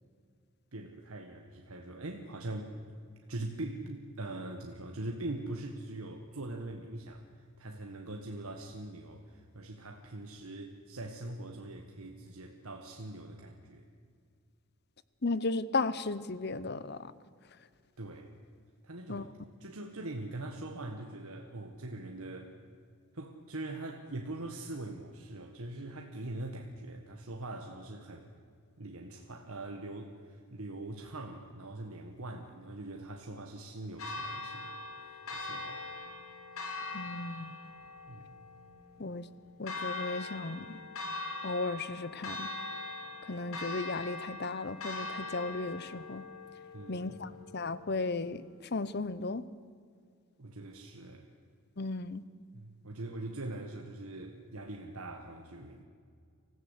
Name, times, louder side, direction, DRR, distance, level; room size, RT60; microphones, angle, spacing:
voice 1, 0.7-2.7 3.3-13.8 18.0-18.3 18.8-19.3 19.6-22.5 23.1-28.3 28.8-35.9 38.1-38.4 46.7-47.1 50.4-51.4 52.5-55.8, right 2 dB, 75° right, 2 dB, 1.5 m, -42 dB
voice 2, 15.2-17.1 19.1-19.3 36.9-37.5 39.0-39.3 39.6-40.8 41.4-42.5 43.2-46.2 46.9-48.4 48.7-49.4 51.8-52.2, left 3 dB, 45° left, 16 dB, 0.8 m, -35 dB
Church bell, 34.0-48.0, left 2 dB, 75° left, 3.9 m, -42 dB
25.0 x 15.5 x 8.2 m, 2.2 s
head